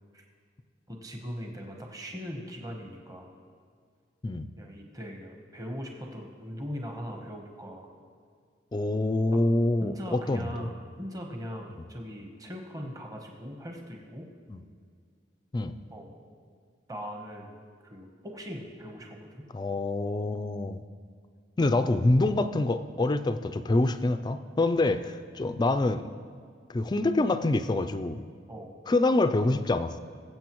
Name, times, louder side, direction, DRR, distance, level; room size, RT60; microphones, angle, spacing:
voice 1, 0.9-3.3 4.6-7.9 9.3-9.4 9.8-14.3 15.9-16.1 16.9-17.5 17.8-19.5 28.5-28.7, equal, 20° right, 1 dB, 1.0 m, -40 dB
voice 2, 8.7-10.7 14.5-14.6 15.5-15.8 19.5-20.8 21.6-26.0 26.7-28.2 28.9-29.9, left 2 dB, 20° left, 11 dB, 0.3 m, -26 dB
21.0 x 7.8 x 3.0 m, 2.2 s
head